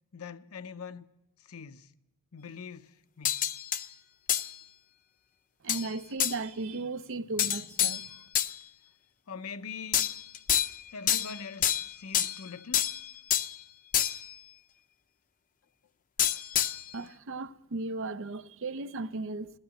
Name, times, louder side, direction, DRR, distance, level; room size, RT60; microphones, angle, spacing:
voice 1, 0.1-1.1 1.4-1.9 2.3-3.5 9.3-10.1 10.9-12.9 13.3-13.4, left 5 dB, 75° left, 0.7 m, -43 dB
sound 1, 3.2-3.8 4.3-4.5 5.7-5.9 6.2-6.4 7.4-8.5 9.9-10.8 11.1-12.4 12.7-13.5 13.9-14.3 16.2-16.9, left 10 dB, 35° left, 0.6 m, -28 dB
voice 2, 5.6-8.1 16.9-19.5, right 3 dB, 60° right, 0.6 m, -36 dB
16.0 x 13.0 x 7.1 m
head